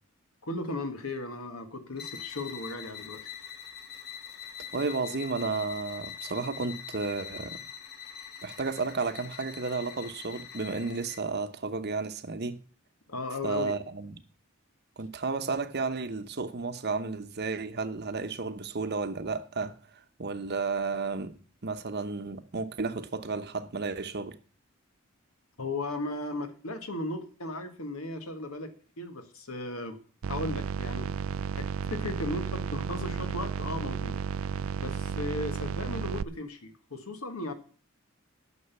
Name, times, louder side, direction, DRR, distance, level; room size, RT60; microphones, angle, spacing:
voice 1, 0.4-3.2 13.1-13.7 25.6-30.0 30.3-31.1 31.6-34.2 34.8-37.5, left 2 dB, 85° left, 1.7 m, -36 dB
sound 1, 1.9-11.3, left 8 dB, 50° left, 1.3 m, -43 dB
voice 2, 4.7-7.6 8.4-12.6 13.4-14.2 15.0-21.3 21.6-24.4, right 4 dB, 50° right, 0.9 m, -32 dB
sound 2, 30.2-36.2, right 7 dB, 70° right, 0.4 m, -33 dB
9.7 x 6.5 x 8.2 m
head